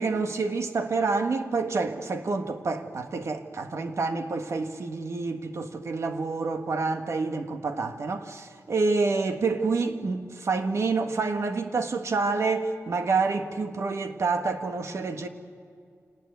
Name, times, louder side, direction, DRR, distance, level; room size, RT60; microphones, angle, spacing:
voice 1, 0.0-15.3, right 4 dB, 65° right, 1.6 m, -28 dB
27.5 x 18.5 x 9.5 m
wide cardioid pair, 160°, 5 cm